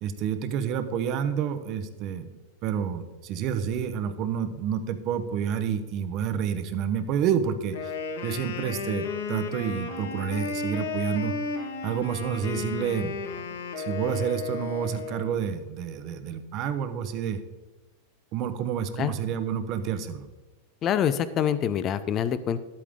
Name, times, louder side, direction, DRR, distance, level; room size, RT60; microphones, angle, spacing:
voice 1, 0.0-2.3 2.6-7.9 8.2-11.3 11.8-17.4 18.3-20.3, right 8 dB, 40° right, 10 dB, 0.9 m, -29 dB
Wind instrument woodwind instrument, 7.7-15.4, left 4 dB, 85° left, 1.5 m, -33 dB
voice 2, 20.8-22.6, left 9 dB, 30° left, 14 dB, 0.5 m, -25 dB
12.0 x 8.6 x 3.7 m, 1.2 s
supercardioid pair, 150°, 0 cm